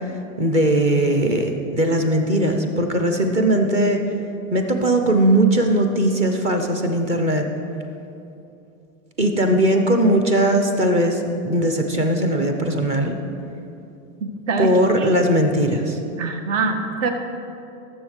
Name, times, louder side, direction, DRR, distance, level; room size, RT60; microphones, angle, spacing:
voice 1, 0.4-4.0 4.5-7.5 9.2-13.2 14.6-16.0, right 1 dB, 15° right, 4 dB, 0.5 m, -19 dB
voice 2, 14.2-14.7 15.0-15.1 16.2-17.1, right 4 dB, 65° right, 5 dB, 1.5 m, -24 dB
14.0 x 7.2 x 6.3 m, 2.7 s
supercardioid pair, 180°, 41 cm